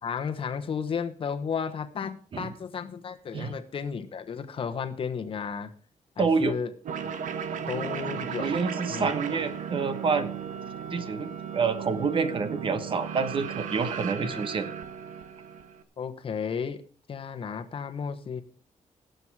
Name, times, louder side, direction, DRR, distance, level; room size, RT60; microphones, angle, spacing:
voice 1, 0.0-5.7 6.2-6.7 7.7-8.5 8.9-9.5 14.2-14.4 16.0-16.8 17.1-18.4, left 6 dB, 45° left, 8 dB, 1.1 m, -33 dB
voice 2, 6.2-6.6 8.4-10.3 10.9-14.7, right 5 dB, 40° right, 11 dB, 1.1 m, -28 dB
sound 1, 6.8-15.8, right 7 dB, 80° right, 1.3 m, -35 dB
18.5 x 8.0 x 4.7 m, 0.40 s
wide cardioid pair, 180°, 13 cm